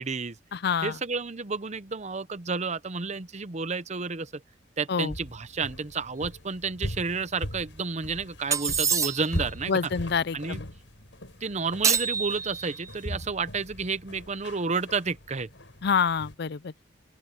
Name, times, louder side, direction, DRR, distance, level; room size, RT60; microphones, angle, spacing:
voice 1, 0.0-0.4 0.8-4.4 4.8-9.7 10.3-10.6 11.4-15.5, right 4 dB, 40° right, 0.8 m, -31 dB
voice 2, 0.5-1.0 4.9-5.2 9.7-10.7 15.8-16.7, left 6 dB, 60° left, 0.5 m, -27 dB
sound 1, 5.1-16.3, equal, 85° left, 6.3 m, -40 dB
sound 2, 8.5-9.5 11.8-12.9, right 6 dB, 15° right, 0.4 m, -27 dB
open air
head